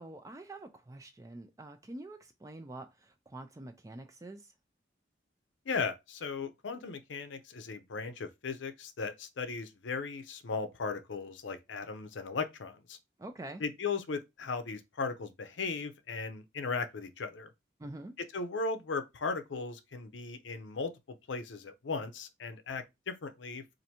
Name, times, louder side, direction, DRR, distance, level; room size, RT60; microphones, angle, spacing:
voice 1, 0.0-4.5 13.2-13.6 17.8-18.1, right 2 dB, 15° right, 0.4 m, -46 dB
voice 2, 5.7-13.0 13.6-17.5 18.3-20.9 21.3-23.8, left 4 dB, 80° left, 0.6 m, -37 dB
4.4 x 2.6 x 2.8 m
head